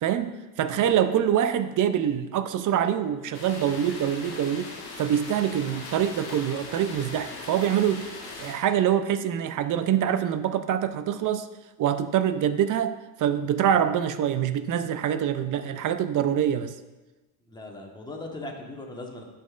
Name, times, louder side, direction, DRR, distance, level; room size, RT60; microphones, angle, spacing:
voice 1, 0.0-4.7 5.0-8.1 8.4-11.5 11.8-16.7, right 9 dB, 40° right, 11 dB, 0.5 m, -25 dB
sound 1, 3.3-8.5, left 3 dB, 90° left, 1.7 m, -40 dB
voice 2, 17.5-19.2, left 2 dB, 10° left, 0 dB, 1.3 m, -39 dB
10.5 x 5.5 x 2.5 m, 1.1 s
supercardioid pair, 80°, 50 cm